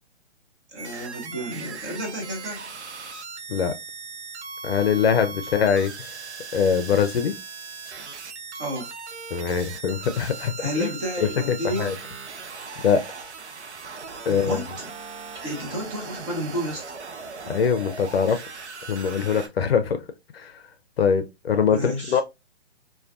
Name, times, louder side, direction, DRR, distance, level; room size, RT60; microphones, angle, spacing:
voice 1, 0.7-2.6 5.4-5.5 8.5-8.9 10.6-11.9 14.3-14.9 15.4-16.8 21.7-22.2, equal, 25° right, 0.8 m, -31 dB
sound 1, 0.8-19.5, right 4 dB, 80° right, 0.6 m, -38 dB
voice 2, 4.6-5.9 6.5-7.3 9.3-10.5 10.8-10.9 11.5-12.0 12.8-13.0 14.3-14.6 17.5-18.4 18.9-20.0 20.3-20.5 21.0-22.2, left 7 dB, 60° left, 0.5 m, -22 dB
2.3 x 2.2 x 2.4 m
figure-of-eight pair, 135°, 33 cm